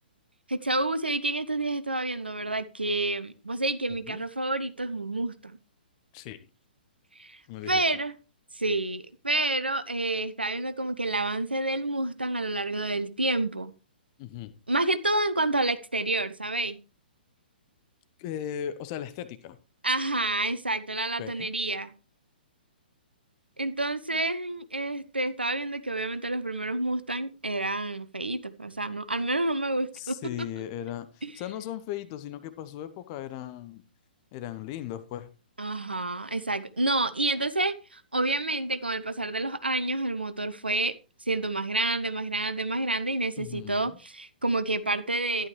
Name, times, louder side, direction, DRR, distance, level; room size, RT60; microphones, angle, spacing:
voice 1, 0.5-5.6 7.2-8.1 8.5-13.7 14.7-16.8 19.8-21.9 23.6-30.2 31.2-31.3 35.6-40.9 41.3-45.5, right 2 dB, 80° right, 0.8 m, -29 dB
voice 2, 3.9-4.3 6.1-6.4 7.5-8.0 14.2-14.5 18.2-19.6 21.2-21.5 29.9-33.8 34.3-35.3 43.4-44.0, left 11 dB, 30° left, 0.9 m, -37 dB
11.5 x 11.0 x 3.2 m
figure-of-eight pair, 120°, 5 cm